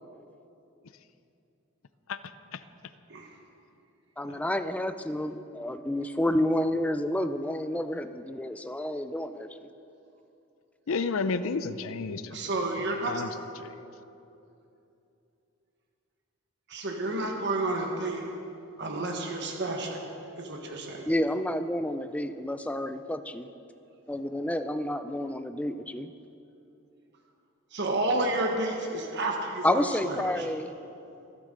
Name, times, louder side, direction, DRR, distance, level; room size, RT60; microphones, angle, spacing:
voice 1, 4.2-9.7 21.1-23.5 24.1-26.1 29.6-30.7, left 1 dB, 5° left, 10 dB, 0.4 m, -30 dB
voice 2, 10.9-12.4 12.7-13.7, left 4 dB, 75° left, 12 dB, 0.5 m, -32 dB
voice 3, 12.3-13.2 13.6-13.7 16.7-18.2 18.8-20.0 20.4-21.1 27.7-29.8, right 2 dB, 55° right, 2 dB, 1.3 m, -30 dB
25.0 x 9.6 x 3.8 m, 2.7 s
head